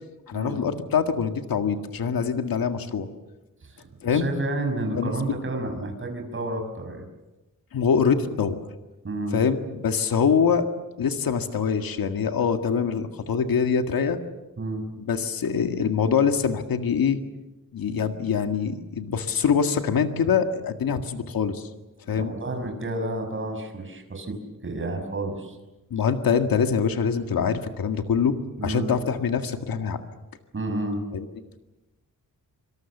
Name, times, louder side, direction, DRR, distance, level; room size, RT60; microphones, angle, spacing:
voice 1, 0.3-3.1 4.0-4.3 4.9-5.1 7.7-8.6 9.3-10.7 11.0-14.2 15.0-17.2 17.7-21.7 22.1-22.3 25.9-28.4 28.6-30.0 31.1-31.3, left 6 dB, 85° left, 6 dB, 1.9 m, -24 dB
voice 2, 3.6-7.0 9.0-9.4 14.6-14.9 22.1-25.6 28.6-28.9 30.5-31.0, right 2 dB, 35° right, 4 dB, 5.6 m, -30 dB
26.0 x 25.5 x 7.3 m, 1.1 s
wide cardioid pair, 170°, 34 cm